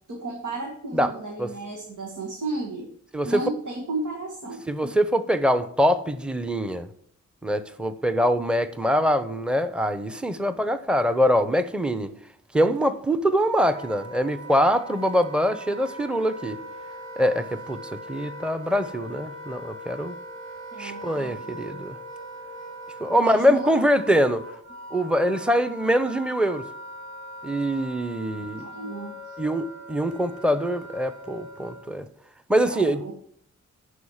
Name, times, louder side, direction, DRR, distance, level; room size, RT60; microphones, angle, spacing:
voice 1, 0.1-2.9 3.2-4.9 20.7-21.4 23.2-23.8 28.3-29.4 32.7-33.1, right 2 dB, 80° right, 2.1 m, -34 dB
voice 2, 4.7-6.9 7.4-12.1 12.5-16.6 17.2-20.2 20.8-22.0 23.0-24.4 24.9-26.6 27.4-28.7 29.4-32.1 32.5-33.1, equal, 5° right, 0.9 m, -23 dB
Wind instrument woodwind instrument, 13.2-32.0, right 1 dB, 60° right, 3.2 m, -41 dB
11.0 x 5.0 x 7.3 m
cardioid pair, 70°, 30 cm